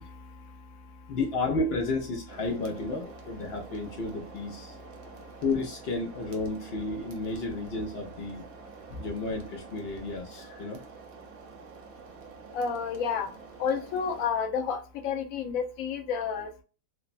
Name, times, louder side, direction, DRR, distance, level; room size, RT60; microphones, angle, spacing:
voice 1, 0.0-1.2 4.7-5.4 8.9-9.0 12.5-16.6, left 6 dB, 65° left, 0.9 m, -32 dB
voice 2, 1.1-4.8 5.4-8.5 9.0-10.8, left 3 dB, 85° left, 0.5 m, -32 dB
sound 1, 2.3-14.3, right 5 dB, 65° right, 1.1 m, -48 dB
3.1 x 2.0 x 2.4 m
omnidirectional pair, 1.7 m